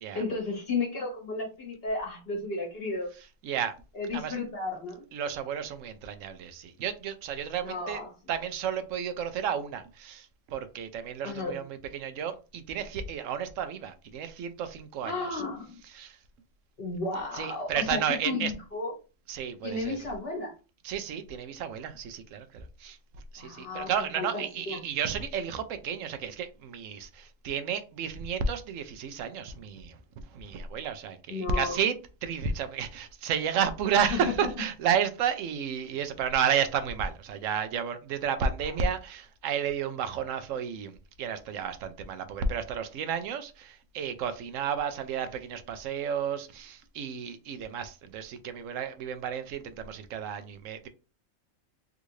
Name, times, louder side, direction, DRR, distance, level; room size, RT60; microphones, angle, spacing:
voice 1, 0.1-3.1 3.9-5.0 7.6-8.1 11.2-11.6 15.0-15.8 16.8-18.9 19.6-20.5 23.4-24.8 31.3-31.8 34.1-34.3, left 3 dB, 50° left, 1.5 m, -33 dB
voice 2, 3.4-3.7 4.1-4.4 5.1-8.0 8.3-15.4 15.8-16.2 17.3-18.5 19.3-20.1 20.8-30.0 30.3-32.0 32.2-50.9, right 7 dB, 85° right, 1.0 m, -32 dB
3.6 x 2.5 x 3.0 m
omnidirectional pair, 1.3 m